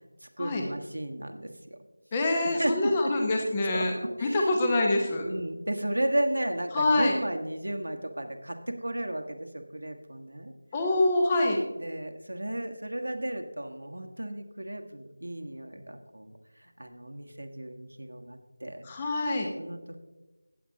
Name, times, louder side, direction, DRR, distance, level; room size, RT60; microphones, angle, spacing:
voice 1, 0.2-1.8 2.6-3.1 3.7-4.5 5.2-10.5 11.8-16.3 16.6-18.9 19.6-19.8, right 1 dB, 85° right, 5 dB, 1.4 m, -34 dB
voice 2, 2.1-3.9 4.2-5.3 6.7-7.1 10.7-11.6 18.8-19.5, left 2 dB, 15° left, 2 dB, 0.9 m, -25 dB
15.0 x 9.4 x 2.8 m, 1.1 s
figure-of-eight pair, 170°, 0 cm